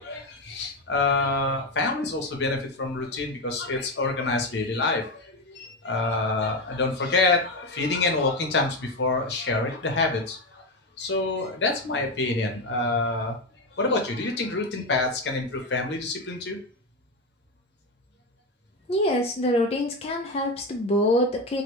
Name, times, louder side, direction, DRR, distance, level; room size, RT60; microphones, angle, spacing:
voice 1, 0.0-10.6 11.0-13.4 13.8-16.6, left 3 dB, 75° left, 3 dB, 0.8 m, -26 dB
voice 2, 18.9-21.6, left 1 dB, 35° left, 1 dB, 0.4 m, -24 dB
3.0 x 2.7 x 3.0 m, 0.42 s
head